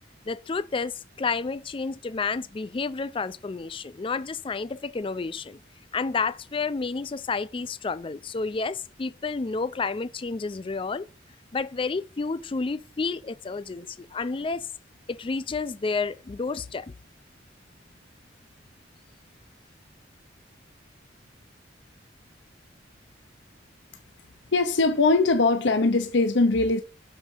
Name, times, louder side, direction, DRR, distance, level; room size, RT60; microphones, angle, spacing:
voice 1, 0.3-5.6 5.9-11.1 11.5-14.7 15.1-16.9, left 4 dB, 30° left, 0.4 m, -30 dB
voice 2, 24.5-26.8, left 3 dB, 70° left, 0.7 m, -21 dB
6.4 x 5.0 x 5.4 m
head